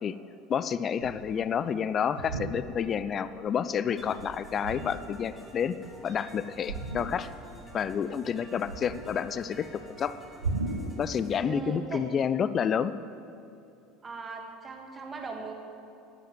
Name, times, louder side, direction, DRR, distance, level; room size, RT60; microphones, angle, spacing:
voice 1, 0.5-5.8 6.0-7.3 7.7-10.2 11.0-12.9, left 7 dB, 35° left, 14 dB, 0.5 m, -29 dB
sound 1, 1.0-1.4 2.1-3.0 3.4-3.6 3.9-5.2 6.7-7.5 7.7-9.4 10.4-11.0, right 3 dB, 80° right, 1.0 m, -36 dB
sound 2, 4.0-11.4, equal, 15° left, 4.1 m, -50 dB
voice 2, 11.4-12.0 14.0-15.5, right 4 dB, 25° right, 2 dB, 1.9 m, -39 dB
11.5 x 10.5 x 8.0 m, 2.6 s
figure-of-eight pair, 70°, 0 cm